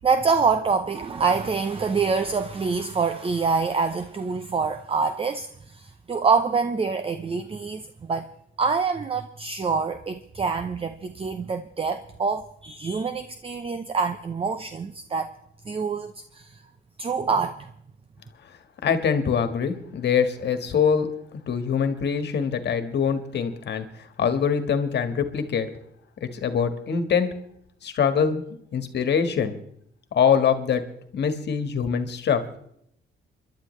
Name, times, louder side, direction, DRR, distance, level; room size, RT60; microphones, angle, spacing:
voice 1, 0.0-8.3 8.6-15.3 15.6-16.6 17.0-17.7, right 5 dB, 30° right, 0.7 m, -26 dB
voice 2, 18.8-21.1 21.5-25.7 26.2-27.3 27.8-29.6 30.1-30.8 31.1-32.4, left 7 dB, 60° left, 1.6 m, -24 dB
27.5 x 11.5 x 3.3 m
cardioid pair, 90°, 20 cm